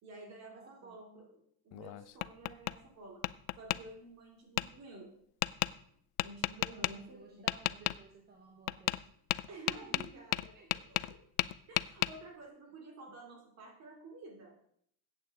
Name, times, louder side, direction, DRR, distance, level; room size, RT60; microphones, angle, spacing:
voice 1, 0.0-1.4 1.6-3.2 3.6-5.1 6.2-7.4 9.5-11.2 11.7-14.6, right 2 dB, 40° right, 2 dB, 2.9 m, -51 dB
voice 2, 0.5-1.0 6.7-9.0 9.3-10.2 10.5-10.9 13.1-13.2, right 4 dB, 25° right, 1 dB, 1.3 m, -57 dB
Tap, 1.7-2.8 3.2-3.8 4.6-4.7 5.4-5.7 6.2-6.9 7.5-8.0 8.7-9.0 9.3-11.1 11.4-12.1, left 20 dB, 75° left, 0.5 m, -32 dB
14.5 x 8.8 x 3.7 m, 0.66 s
cardioid pair, 160°, 39 cm